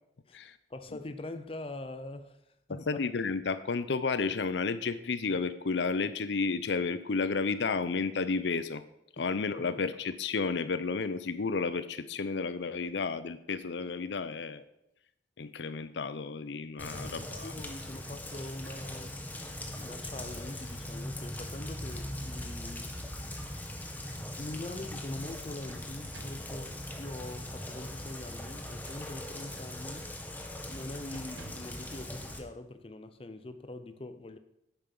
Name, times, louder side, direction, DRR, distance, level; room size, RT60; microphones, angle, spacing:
voice 1, 0.7-2.4 2.7-3.0 9.2-9.3 17.0-17.1 17.4-19.2 19.8-23.0 24.4-30.1 30.6-34.4, left 2 dB, 30° left, 0.6 m, -43 dB
voice 2, 2.7-8.8 9.2-14.6 15.4-17.5, left 4 dB, 70° left, 0.6 m, -32 dB
Rain, 16.8-32.4, left 1 dB, 10° left, 1.0 m, -40 dB
sound 1, 22.5-23.2 23.7-23.8 25.2-26.6 28.6-29.5 30.0-30.2 30.5-30.8 31.1-31.8, right 2 dB, 85° right, 1.1 m, -54 dB
9.1 x 8.6 x 5.4 m
head